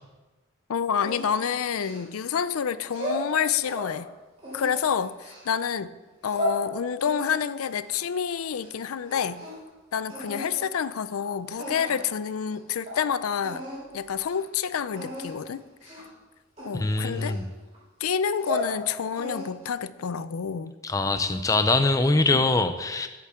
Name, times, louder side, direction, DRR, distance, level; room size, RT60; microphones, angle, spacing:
voice 1, 0.7-4.1 4.5-5.9 6.2-9.4 9.9-13.6 13.9-15.6 16.6-17.4 18.0-20.7, left 7 dB, 85° left, 15 dB, 0.4 m, -28 dB
sound 1, 1.0-2.3 2.8-3.9 4.4-5.5 6.0-6.6 7.0-8.8 9.0-9.7 10.1-10.5 11.2-11.3 11.6-12.1 12.5-12.6 12.9-13.0 13.4-13.8 14.2-14.4 14.9-15.3 15.8-16.1 16.6-17.8 18.2-18.7 19.2-19.7, left 1 dB, 30° right, 3.9 m, -35 dB
voice 2, 16.7-17.5 20.8-23.1, left 2 dB, 15° left, 8 dB, 0.4 m, -23 dB
14.5 x 8.5 x 3.7 m, 1.2 s
head